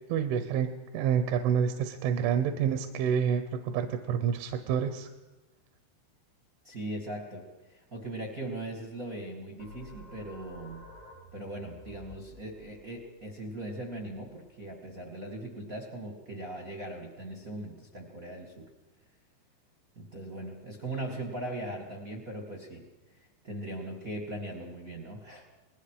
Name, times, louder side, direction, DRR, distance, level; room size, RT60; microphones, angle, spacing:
voice 1, 0.1-5.1, right 8 dB, 80° right, 7 dB, 3.3 m, -28 dB
voice 2, 6.6-10.9 11.3-18.7 19.9-25.4, right 1 dB, 40° right, 1 dB, 1.2 m, -39 dB
sound 1, 9.6-14.9, left 2 dB, 75° left, 8.2 m, -52 dB
28.0 x 20.0 x 5.0 m, 1.1 s
omnidirectional pair, 5.5 m